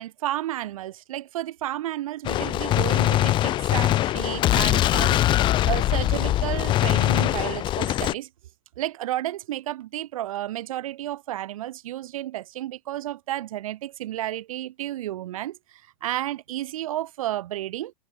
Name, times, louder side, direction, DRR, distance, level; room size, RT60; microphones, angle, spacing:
voice 1, 0.0-8.3 8.8-17.9, right 14 dB, 75° right, 0.5 m, -32 dB
Gunshot gunfire, 2.2-8.1, left 14 dB, 25° left, 0.4 m, -22 dB
hypercardioid pair, 100°, 18 cm